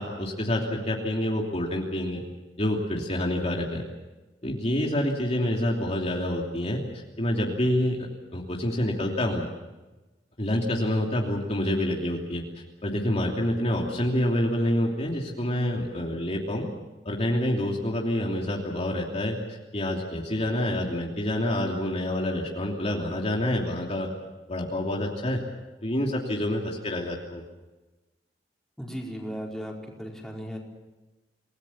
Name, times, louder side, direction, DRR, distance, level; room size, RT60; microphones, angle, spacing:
voice 1, 0.0-2.2 2.6-3.8 4.4-6.8 7.2-8.0 8.3-9.5 10.4-16.7 17.0-19.4 19.7-24.1 24.5-25.4 25.8-27.4, left 1 dB, 35° left, -1 dB, 3.0 m, -27 dB
voice 2, 28.8-30.6, equal, 5° left, -2 dB, 4.9 m, -36 dB
28.5 x 19.0 x 7.2 m, 1.1 s
head